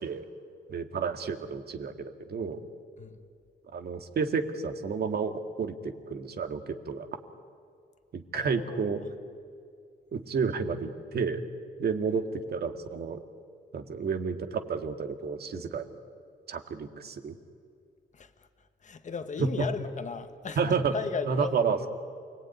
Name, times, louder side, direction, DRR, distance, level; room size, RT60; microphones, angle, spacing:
voice 1, 0.7-2.6 3.7-7.1 8.1-9.0 10.1-11.4 11.8-13.2 13.7-16.0 16.5-17.4 19.4-19.7 20.6-20.9 21.3-21.9, right 5 dB, 55° right, 6 dB, 2.0 m, -31 dB
voice 2, 8.3-9.0 12.1-12.2 18.1-21.9, left 5 dB, 40° left, 8 dB, 1.5 m, -37 dB
28.5 x 20.0 x 9.5 m, 2.3 s
cardioid pair, 115°, 20 cm